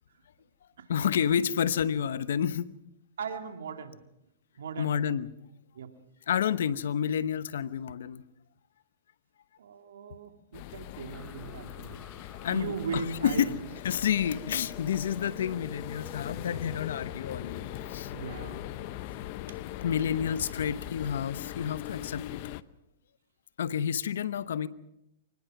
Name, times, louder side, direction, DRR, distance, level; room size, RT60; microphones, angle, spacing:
voice 1, 0.9-2.7 4.8-5.3 6.3-8.2 12.4-13.5 13.8-18.1 19.8-22.4 23.6-24.7, left 8 dB, 75° left, 15 dB, 1.0 m, -29 dB
voice 2, 3.2-4.0 4.6-5.0 5.8-5.9 9.6-12.0 12.5-13.5 14.2-14.4 16.6-17.1 18.1-18.6, right 6 dB, 80° right, 6 dB, 2.3 m, -38 dB
railway station, 10.5-22.6, left 16 dB, 50° left, 0.7 m, -41 dB
sound 1, 11.1-21.3, right 1 dB, 5° right, 1.0 m, -52 dB
24.0 x 20.0 x 6.0 m, 0.86 s
hypercardioid pair, 125°, 0 cm